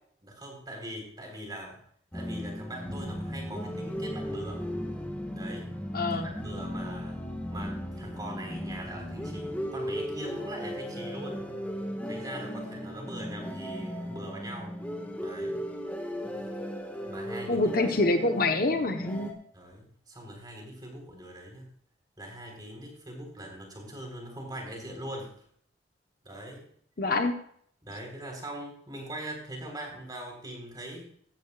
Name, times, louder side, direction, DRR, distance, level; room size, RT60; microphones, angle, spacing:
voice 1, 0.2-1.8 2.1-4.7 5.3-5.7 6.1-7.2 7.5-11.5 12.1-14.8 15.2-15.6 17.1-17.8 19.5-21.7 22.2-25.4 26.2-26.7 27.8-31.1, right 1 dB, 20° right, 1 dB, 4.0 m, -42 dB
sound 1, 2.1-19.3, equal, 10° left, 1.5 m, -36 dB
voice 2, 5.9-6.3 17.5-19.4 27.0-27.4, left 2 dB, 50° left, 6 dB, 1.0 m, -26 dB
16.0 x 13.0 x 2.4 m, 0.62 s
head